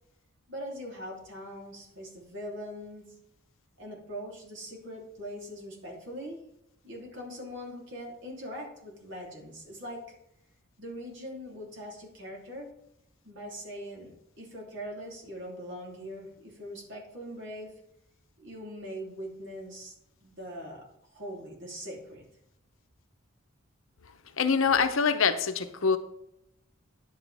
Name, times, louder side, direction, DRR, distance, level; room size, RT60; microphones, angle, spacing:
voice 1, 0.5-3.0 3.8-6.4 6.8-10.0 10.8-12.7 13.2-17.8 18.4-19.9 20.2-22.2, equal, 60° right, 3.1 m, -41 dB
voice 2, 24.4-26.0, left 5 dB, 70° left, 0.8 m, -24 dB
10.0 x 8.5 x 3.4 m
head